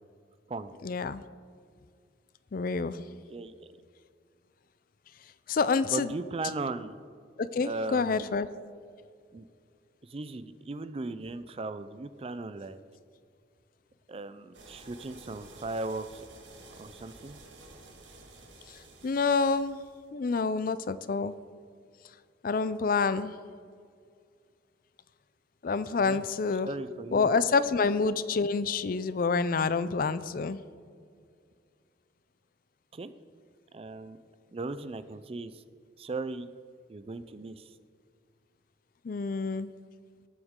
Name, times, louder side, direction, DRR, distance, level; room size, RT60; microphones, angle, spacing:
voice 1, 0.8-1.2 2.5-3.0 5.5-6.1 7.4-8.5 18.7-19.8 20.1-21.3 22.4-23.4 25.6-26.7 27.1-30.6 39.0-39.7, left 4 dB, 50° left, 15 dB, 0.4 m, -28 dB
voice 2, 3.3-3.7 5.9-7.0 7.6-8.3 9.3-9.5 10.0-12.8 14.1-16.2 16.8-17.4 26.0-26.2 26.6-27.3 32.9-33.1 33.7-34.2 34.5-35.6 36.0-36.5 36.9-37.8, right 3 dB, 30° right, 12 dB, 0.4 m, -37 dB
sound 1, 14.5-20.0, right 2 dB, 80° right, 1.8 m, -52 dB
18.5 x 7.9 x 3.7 m, 2.2 s
head